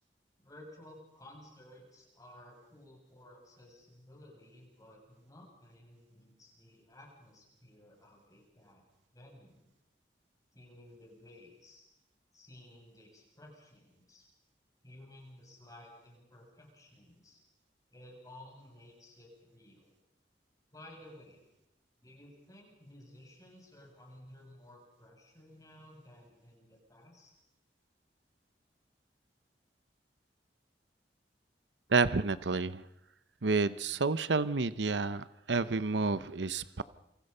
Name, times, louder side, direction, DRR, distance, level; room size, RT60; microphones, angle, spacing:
voice 1, 0.4-8.8 9.1-9.7 10.5-11.8 12.3-14.3 14.8-17.4 17.9-19.9 20.7-21.5 22.0-27.3, left 1 dB, 20° left, 0 dB, 7.8 m, -55 dB
voice 2, 31.9-32.8 33.4-36.8, right 4 dB, 85° right, 14 dB, 0.8 m, -30 dB
28.0 x 25.5 x 5.6 m, 0.88 s
head